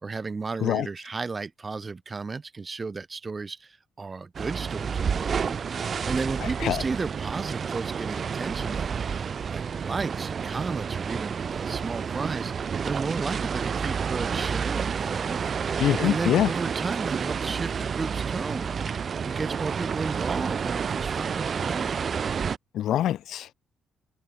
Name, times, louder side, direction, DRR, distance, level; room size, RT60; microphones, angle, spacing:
voice 1, 0.0-15.4 15.7-22.0, right 4 dB, 30° right, 4.1 m, -34 dB
sound 1, 4.3-22.6, right 6 dB, 45° right, 1.1 m, -30 dB
voice 2, 15.8-16.5 22.7-23.5, left 12 dB, 75° left, 0.6 m, -24 dB
cardioid pair, 90°, 0 cm